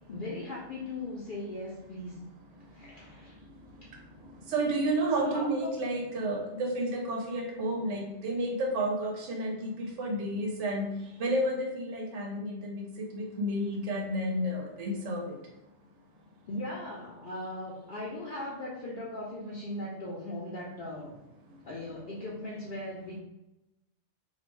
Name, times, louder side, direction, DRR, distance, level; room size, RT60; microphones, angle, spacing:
voice 1, 0.1-2.2 2.7-3.4 5.1-5.8 14.5-14.6 16.5-21.1 21.6-23.2, left 1 dB, 55° left, -5 dB, 0.6 m, -38 dB
voice 2, 4.5-10.9 11.2-12.8 13.1-15.2, right 1 dB, 85° right, 1 dB, 0.9 m, -31 dB
2.5 x 2.1 x 3.1 m, 0.91 s
omnidirectional pair, 1.2 m